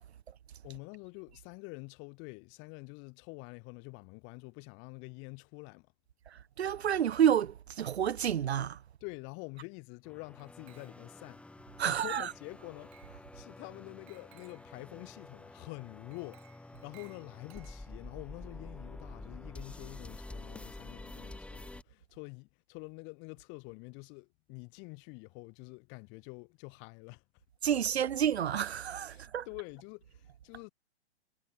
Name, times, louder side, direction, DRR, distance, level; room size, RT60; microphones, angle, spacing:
voice 1, 0.6-5.9 9.0-11.4 11.8-27.4 29.1-30.7, left 32 dB, 35° left, 5.3 m, -47 dB
voice 2, 6.3-8.8 11.8-12.3 27.6-29.4, right 9 dB, 75° right, 0.9 m, -29 dB
sound 1, 10.0-21.8, left 2 dB, 5° left, 2.3 m, -49 dB
Glass, 10.4-11.2 12.1-12.5 12.9-13.2 14.1-14.7 16.1-18.1, right 40 dB or more, 40° right, 5.7 m, -62 dB
hypercardioid pair, 120°, 33 cm